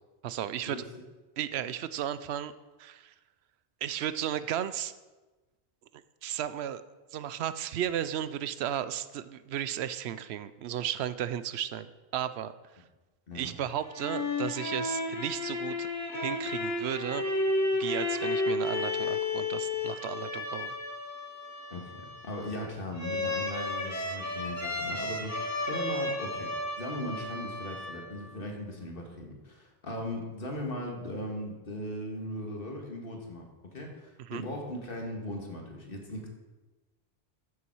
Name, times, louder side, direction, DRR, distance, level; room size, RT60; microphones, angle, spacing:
voice 1, 0.2-0.8 1.4-2.5 2.8-3.1 3.8-4.9 5.9-6.8 7.1-11.9 12.1-12.5 13.3-15.9 16.1-17.3 17.8-20.7 34.3-34.4, right 10 dB, 80° right, 14 dB, 0.8 m, -34 dB
sound 1, 13.7-28.4, left 2 dB, 15° left, 1.2 m, -33 dB
voice 2, 21.7-26.5 26.8-36.3, left 1 dB, 60° left, 1 dB, 2.0 m, -38 dB
13.5 x 7.0 x 4.6 m, 1.2 s
omnidirectional pair, 1.1 m